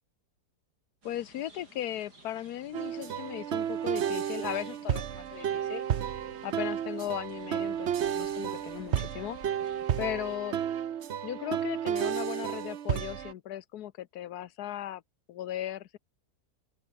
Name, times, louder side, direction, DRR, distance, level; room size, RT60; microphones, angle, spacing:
voice 1, 1.0-5.8 6.4-9.4 10.0-10.6 11.2-15.0 15.3-16.0, left 12 dB, 75° left, 1.3 m, -37 dB
sound 1, 1.0-10.4, right 2 dB, 90° right, 8.5 m, -56 dB
sound 2, 2.7-13.3, right 9 dB, 55° right, 0.9 m, -32 dB
open air
omnidirectional pair, 1.7 m